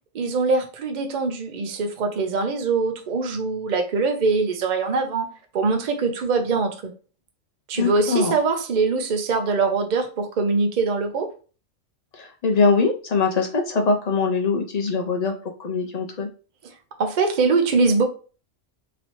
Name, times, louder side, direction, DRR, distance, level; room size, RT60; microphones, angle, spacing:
voice 1, 0.1-6.9 7.7-11.3 16.6-16.7 17.0-18.0, right 4 dB, 45° right, 5 dB, 0.6 m, -23 dB
voice 2, 7.8-8.3 12.1-15.3 15.6-16.3, left 4 dB, 75° left, 3 dB, 0.3 m, -22 dB
3.1 x 2.8 x 2.9 m, 0.37 s
omnidirectional pair, 1.3 m